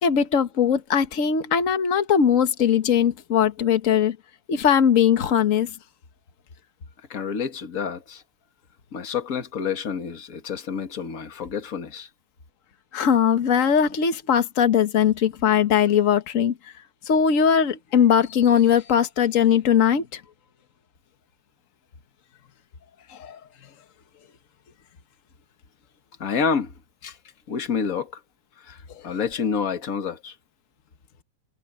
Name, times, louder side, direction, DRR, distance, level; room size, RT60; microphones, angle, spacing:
voice 1, 0.0-4.2 4.5-5.7 12.9-16.5 17.1-20.2 23.2-23.4, left 8 dB, 65° left, 0.7 m, -20 dB
voice 2, 7.1-8.2 8.9-12.1 26.2-26.7 27.0-27.2 27.5-28.2 28.6-28.8 29.0-30.4, left 6 dB, 35° left, 1.8 m, -28 dB
omnidirectional pair, 3.4 m